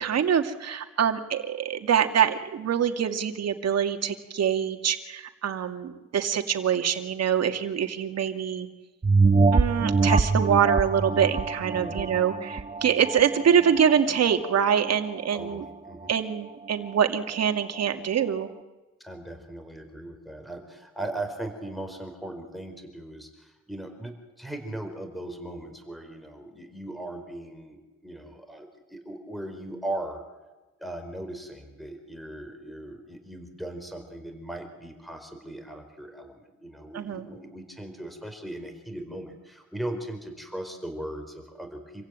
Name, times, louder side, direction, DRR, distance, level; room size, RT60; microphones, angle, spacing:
voice 1, 0.0-8.7 9.5-15.6 16.1-18.5 36.9-37.3, right 8 dB, 60° right, 6 dB, 2.4 m, -25 dB
sound 1, 9.0-14.0 14.5-14.6, right 3 dB, 20° right, 1.0 m, -24 dB
voice 2, 11.7-12.1 15.3-16.1 19.0-30.2 30.8-42.1, right 1 dB, ahead, 5 dB, 4.5 m, -38 dB
27.0 x 16.0 x 9.2 m, 1.1 s
cardioid pair, 90°, 30 cm